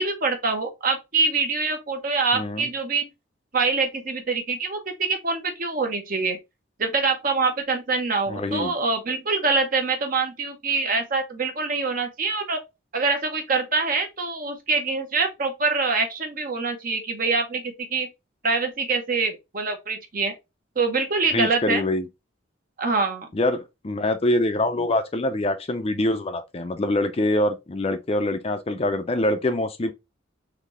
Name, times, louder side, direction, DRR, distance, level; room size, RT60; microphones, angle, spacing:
voice 1, 0.0-3.1 3.5-6.4 6.8-12.6 12.9-18.1 18.4-20.3 20.8-21.8 22.8-23.3, right 4 dB, 45° right, 0.9 m, -25 dB
voice 2, 2.3-2.7 8.3-8.7 21.3-22.1 23.3-29.9, left 1 dB, 30° left, 0.5 m, -24 dB
4.1 x 3.1 x 3.0 m
head